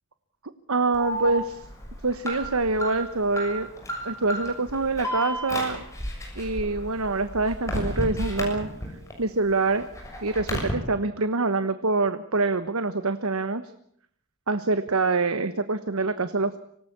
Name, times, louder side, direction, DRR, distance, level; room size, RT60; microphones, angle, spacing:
voice 1, 0.7-1.6 2.0-3.7 4.0-5.8 6.3-8.7 9.2-9.9 10.2-13.6 14.5-16.6, right 3 dB, 75° right, 11 dB, 1.2 m, -25 dB
Alarm, 0.9-9.1 9.5-10.7, equal, 15° left, 6.7 m, -32 dB
25.5 x 18.5 x 8.7 m, 0.68 s
head